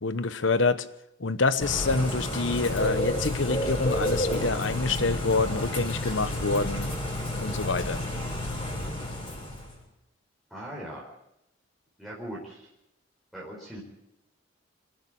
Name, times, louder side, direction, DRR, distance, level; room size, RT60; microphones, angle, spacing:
voice 1, 0.0-0.9 1.2-7.0 7.4-8.0, left 3 dB, 70° left, 13 dB, 1.0 m, -27 dB
Bird / Rain, 1.6-9.8, left 1 dB, 30° left, 7.9 m, -30 dB
voice 2, 10.5-11.1 12.0-12.7 13.3-13.8, right 1 dB, ahead, -3 dB, 4.5 m, -39 dB
26.0 x 11.5 x 8.7 m, 0.83 s
head